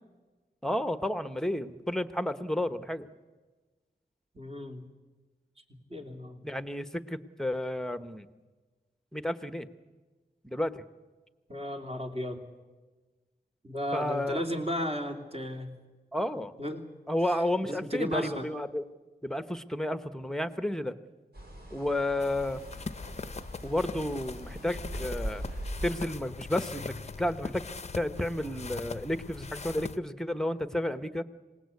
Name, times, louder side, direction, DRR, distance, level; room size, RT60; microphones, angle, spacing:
voice 1, 0.6-3.1 6.4-8.3 9.1-9.7 10.4-10.8 13.9-14.4 16.1-16.6 17.1-18.8 19.2-20.9 21.7-22.6 23.6-25.4 25.8-27.6 27.9-31.2, left 1 dB, 5° left, 11 dB, 1.0 m, -31 dB
voice 2, 4.3-4.8 5.9-6.4 11.5-12.4 13.6-15.7 16.6-16.8 17.6-18.4, equal, 35° right, 3 dB, 3.0 m, -34 dB
sound 1, 21.3-25.9, right 1 dB, 70° right, 5.1 m, -40 dB
sound 2, 22.2-30.0, left 4 dB, 40° left, 0.6 m, -41 dB
26.5 x 19.0 x 8.4 m, 1.3 s
wide cardioid pair, 90°, 17 cm